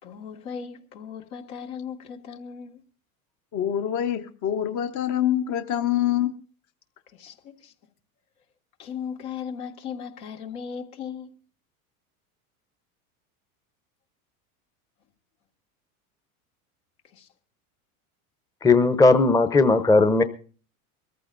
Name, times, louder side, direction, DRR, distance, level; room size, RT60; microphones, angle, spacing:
voice 1, 0.0-2.8 7.1-7.7 8.8-11.3 17.1-17.3, left 7 dB, 75° left, 2.1 m, -37 dB
voice 2, 3.5-6.3, left 11 dB, 40° left, 1.0 m, -25 dB
voice 3, 18.6-20.2, left 3 dB, 10° left, 0.8 m, -17 dB
23.5 x 14.5 x 2.6 m
hypercardioid pair, 90°, 44 cm